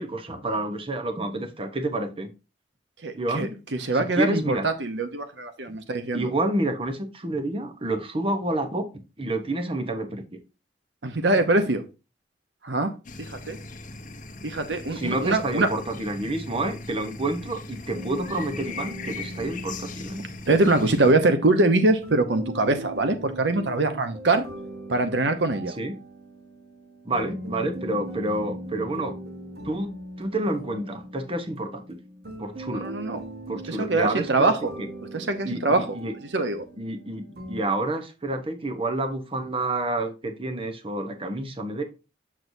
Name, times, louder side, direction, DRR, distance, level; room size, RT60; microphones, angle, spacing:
voice 1, 0.0-2.3 3.1-3.6 3.9-4.6 6.1-10.4 14.9-20.3 25.8-25.9 27.0-29.2 29.6-29.9 30.2-31.8 32.4-32.9 33.5-34.9 35.4-36.1 36.8-41.8, right 2 dB, 30° right, 7 dB, 0.9 m, -29 dB
voice 2, 3.0-6.3 11.0-11.8 12.6-12.9 13.2-13.6 14.4-15.7 20.5-24.4 24.9-25.7 32.7-33.2 33.7-34.7 35.1-35.9 36.3-36.6, right 2 dB, 85° right, 8 dB, 0.9 m, -23 dB
sound 1, 13.0-21.1, left 3 dB, 45° left, 0.8 m, -39 dB
sound 2, 17.9-37.6, right 1 dB, 65° right, 1.2 m, -40 dB
7.5 x 6.2 x 2.7 m, 0.30 s
head